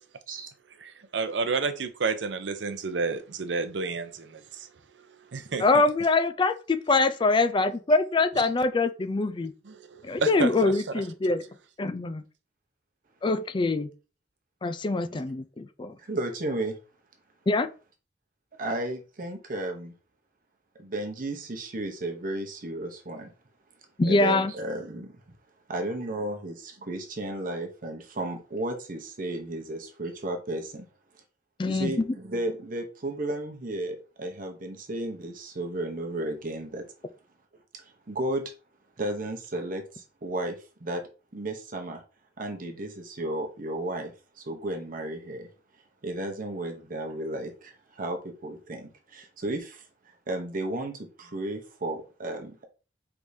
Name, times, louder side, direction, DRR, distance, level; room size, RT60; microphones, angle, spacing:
voice 1, 0.8-4.7 5.3-5.7 9.7-11.0, right 4 dB, 85° right, 0.6 m, -31 dB
voice 2, 5.6-9.5 10.0-11.4 11.8-12.2 13.2-13.9 14.6-16.0 17.5-17.7 24.0-24.5 31.6-31.9, left 3 dB, 30° left, 0.4 m, -24 dB
voice 3, 16.0-16.8 18.6-19.9 20.8-23.3 24.1-25.1 25.7-30.9 31.6-36.8 37.7-38.5 39.0-41.0 41.3-42.0 42.4-45.5 46.0-49.9 50.3-52.6, right 1 dB, 50° right, 0.8 m, -33 dB
4.8 x 3.5 x 2.7 m
head